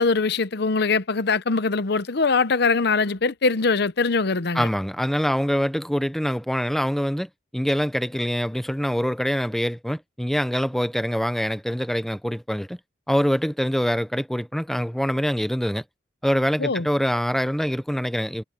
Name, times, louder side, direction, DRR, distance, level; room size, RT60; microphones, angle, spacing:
voice 1, 0.0-4.7 16.6-16.9, left 4 dB, 65° left, 0.8 m, -22 dB
voice 2, 4.5-12.8 13.1-15.8 16.2-18.4, equal, ahead, 0.7 m, -24 dB
head